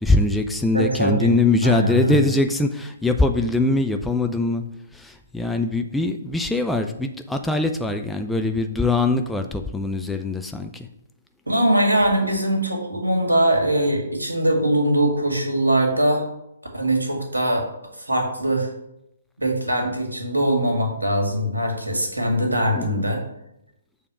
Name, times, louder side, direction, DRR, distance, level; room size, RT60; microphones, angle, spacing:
voice 1, 0.0-4.6 4.9-10.9 22.7-23.1, left 2 dB, 5° left, 5 dB, 0.3 m, -22 dB
voice 2, 0.7-1.3 1.6-2.2 11.5-16.2 16.7-17.7 18.0-18.7 19.4-23.2, right 1 dB, 75° right, 2 dB, 1.8 m, -21 dB
6.6 x 3.5 x 6.1 m, 0.84 s
figure-of-eight pair, 130°, 0 cm